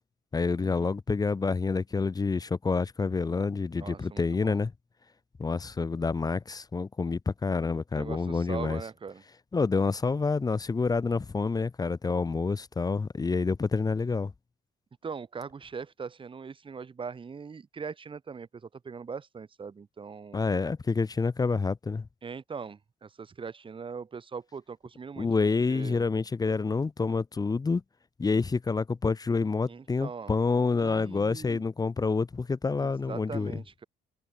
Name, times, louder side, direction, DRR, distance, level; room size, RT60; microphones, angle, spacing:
voice 1, 0.3-4.7 5.4-8.8 9.5-14.3 20.3-22.1 25.2-27.8 28.2-33.5, left 4 dB, 20° left, 1.9 m, -28 dB
voice 2, 3.8-4.6 7.9-9.2 15.0-20.4 22.2-25.3 25.7-26.1 29.7-30.3 30.8-31.6 32.8-33.8, right 5 dB, 30° right, 3.6 m, -41 dB
cardioid pair, 110°, 17 cm